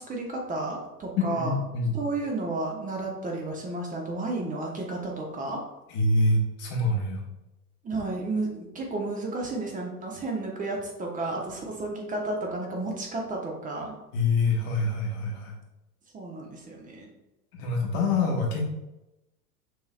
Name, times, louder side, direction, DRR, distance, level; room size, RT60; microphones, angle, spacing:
voice 1, 0.0-1.6 1.9-5.6 7.8-13.9 16.1-17.1, right 2 dB, 15° right, -1 dB, 0.9 m, -32 dB
voice 2, 1.2-1.9 5.9-7.2 14.1-15.5 17.5-18.6, left 2 dB, 45° left, 0 dB, 1.3 m, -25 dB
6.2 x 3.1 x 2.4 m, 0.94 s
figure-of-eight pair, 90°, 47 cm